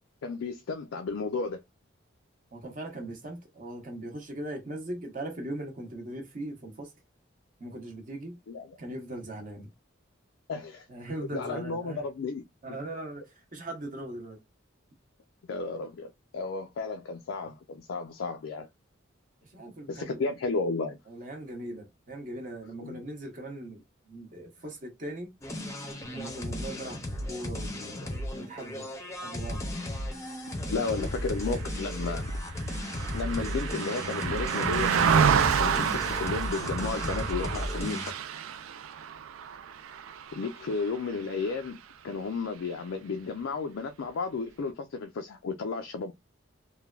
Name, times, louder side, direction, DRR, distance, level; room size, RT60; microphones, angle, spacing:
voice 1, 0.2-1.6 8.5-8.7 10.5-10.9 11.3-12.4 15.5-18.7 19.9-21.0 22.8-23.0 30.7-32.3 33.1-38.0 40.3-46.1, left 4 dB, 80° left, 0.4 m, -33 dB
voice 2, 2.5-6.9 7.6-8.4 8.8-9.7 10.9-12.0 12.6-14.4 19.4-20.2 21.1-25.3 26.1-27.0 27.3-28.9 29.2-29.6 30.7-31.1, right 1 dB, 40° right, 0.7 m, -39 dB
sound 1, 25.4-38.1, left 1 dB, 15° left, 0.6 m, -35 dB
Car passing by, 31.5-41.1 41.5-41.7, right 7 dB, 85° right, 0.3 m, -29 dB
3.2 x 2.2 x 2.3 m
head